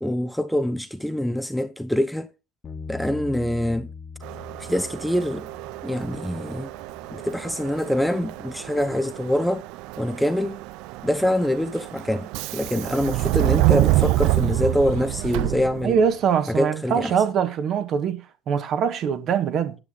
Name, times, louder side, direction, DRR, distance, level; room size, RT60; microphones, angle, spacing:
voice 1, 0.0-2.3 2.9-3.9 4.6-5.5 5.8-6.7 7.1-9.6 10.0-10.6 11.0-16.0 16.5-17.1, left 1 dB, ahead, 0.6 m, -25 dB
Bass guitar, 2.6-8.9, left 5 dB, 25° left, 1.3 m, -42 dB
Subway metro underground, 4.2-16.2, right 18 dB, 65° right, 0.5 m, -27 dB
voice 2, 15.8-19.8, right 7 dB, 45° right, 1.4 m, -23 dB
9.7 x 8.3 x 3.9 m
supercardioid pair, 110°, 0 cm